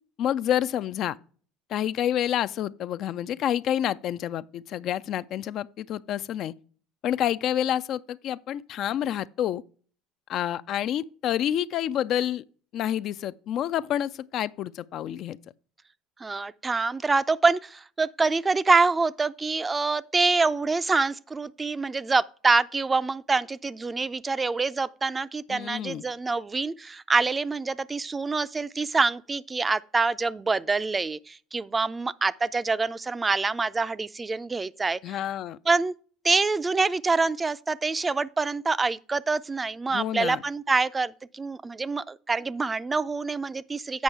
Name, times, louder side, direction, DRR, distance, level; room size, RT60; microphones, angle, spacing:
voice 1, 0.2-1.2 1.7-6.5 7.0-9.6 10.3-12.4 12.7-15.4 25.5-26.0 35.0-35.6 39.9-40.4, left 11 dB, 55° left, 0.3 m, -28 dB
voice 2, 16.2-35.2 35.7-35.9 36.2-44.0, right 3 dB, 20° right, 0.4 m, -26 dB
8.2 x 5.4 x 4.6 m
hypercardioid pair, 75°, 0 cm